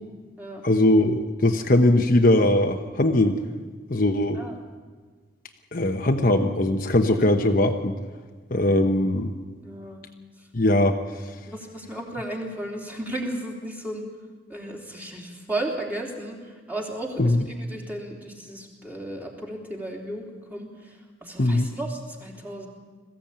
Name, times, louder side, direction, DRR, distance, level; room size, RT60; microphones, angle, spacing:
voice 1, 0.6-3.4 3.9-4.4 5.7-7.9 8.5-9.3 10.5-11.0 17.2-17.4 21.4-21.7, left 1 dB, 45° left, 4 dB, 1.0 m, -20 dB
voice 2, 9.6-10.0 10.4-10.5 11.4-14.0 14.5-22.7, right 1 dB, 10° right, 0 dB, 3.2 m, -34 dB
21.0 x 15.0 x 8.8 m, 1.5 s
head